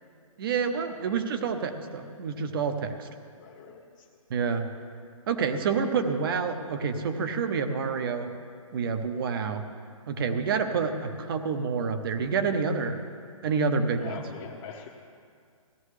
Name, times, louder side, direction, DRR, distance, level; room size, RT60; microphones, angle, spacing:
voice 1, 0.4-3.1 4.3-4.7 5.3-8.3 8.7-9.6 10.1-13.0 13.4-14.3, right 5 dB, 40° right, 7 dB, 0.9 m, -28 dB
voice 2, 3.3-4.1 14.0-14.9, left 6 dB, 35° left, -4 dB, 1.1 m, -43 dB
16.5 x 12.0 x 3.3 m, 2.3 s
hypercardioid pair, 150°, 18 cm